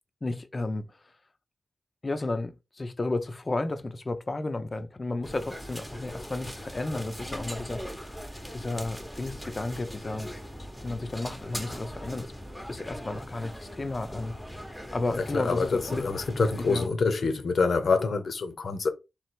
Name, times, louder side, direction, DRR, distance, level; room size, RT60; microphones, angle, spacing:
voice 1, 0.2-0.9 2.0-7.8 8.5-10.3 10.8-12.3 12.7-14.4 14.9-16.0 16.7-16.9, left 2 dB, 35° left, 0.6 m, -32 dB
sound 1, 5.2-16.9, equal, ahead, 0.9 m, -40 dB
voice 2, 15.3-18.9, left 4 dB, 65° left, 0.8 m, -26 dB
3.4 x 3.2 x 4.5 m
wide cardioid pair, 90°, 0 cm